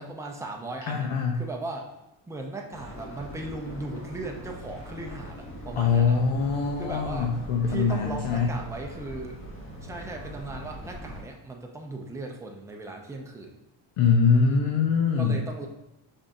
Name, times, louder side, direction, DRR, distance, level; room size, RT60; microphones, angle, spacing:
voice 1, 0.0-1.1 1.3-1.9 2.3-6.2 6.8-7.3 7.7-9.4 9.8-13.5 15.2-15.7, right 2 dB, 5° right, 1 dB, 0.4 m, -37 dB
voice 2, 0.9-1.4 5.8-8.5 14.0-15.4, left 5 dB, 75° left, 1 dB, 0.7 m, -23 dB
sound 1, 2.7-11.2, equal, 25° left, 0.9 m, -41 dB
5.4 x 3.5 x 2.5 m, 0.91 s
cardioid pair, 115°, 48 cm